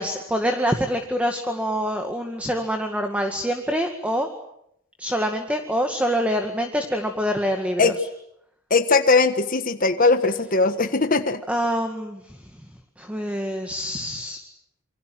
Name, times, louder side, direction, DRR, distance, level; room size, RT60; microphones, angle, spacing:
voice 1, 0.0-4.3 5.0-7.9 11.5-12.4 13.0-14.4, equal, 5° right, 5 dB, 2.0 m, -25 dB
voice 2, 8.7-11.4, left 3 dB, 40° left, 8 dB, 1.4 m, -19 dB
28.0 x 24.5 x 7.8 m, 0.75 s
head